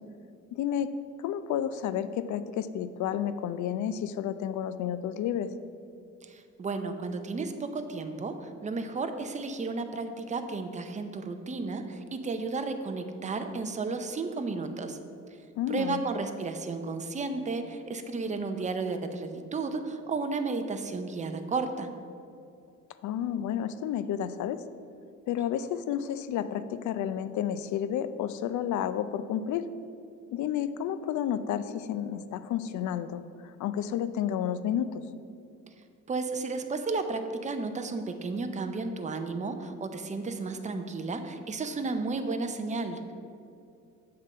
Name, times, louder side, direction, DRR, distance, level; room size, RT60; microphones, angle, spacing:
voice 1, 0.5-0.9 1.2-5.5 15.6-16.0 23.0-24.6 25.3-29.7 30.3-35.0, left 9 dB, 75° left, 12 dB, 0.5 m, -31 dB
voice 2, 6.3-15.0 15.7-21.9 36.1-43.1, right 3 dB, 25° right, 7 dB, 0.6 m, -33 dB
8.0 x 3.8 x 6.5 m, 2.5 s
cardioid pair, 90°, 30 cm